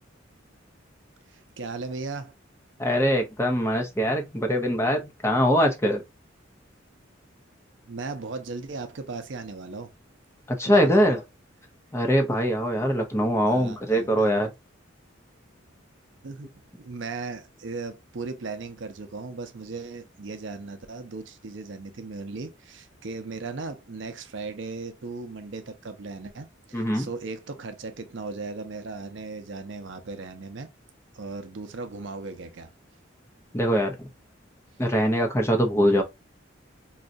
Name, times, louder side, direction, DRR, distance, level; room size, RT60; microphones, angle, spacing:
voice 1, 1.3-2.3 7.9-9.9 10.7-11.1 13.5-14.3 16.2-16.5 16.8-30.7 31.1-32.7, right 3 dB, 65° right, 0.6 m, -37 dB
voice 2, 2.8-6.0 10.5-11.2 11.9-14.5 26.7-27.1 33.5-34.1 34.8-36.0, equal, 15° left, 0.7 m, -22 dB
4.0 x 2.3 x 2.6 m
head